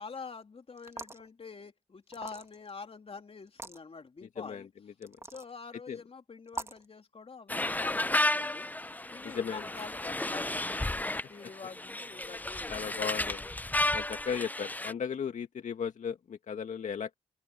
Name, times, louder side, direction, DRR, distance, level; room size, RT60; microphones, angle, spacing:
voice 1, 0.0-4.7 5.3-8.7 9.1-12.9, left 5 dB, 45° left, 3.1 m, -46 dB
sound 1, 0.8-1.3 2.1-2.7 3.5-3.8 5.0-5.5 6.5-6.9, right 2 dB, 20° right, 2.5 m, -42 dB
voice 2, 4.4-4.7 5.0-5.2 5.9-6.0 9.2-9.7 12.7-13.5 13.9-17.1, left 7 dB, 65° left, 1.9 m, -36 dB
sound 2, 7.5-14.9, left 2 dB, 10° left, 0.7 m, -32 dB
open air
supercardioid pair, 45°, 14 cm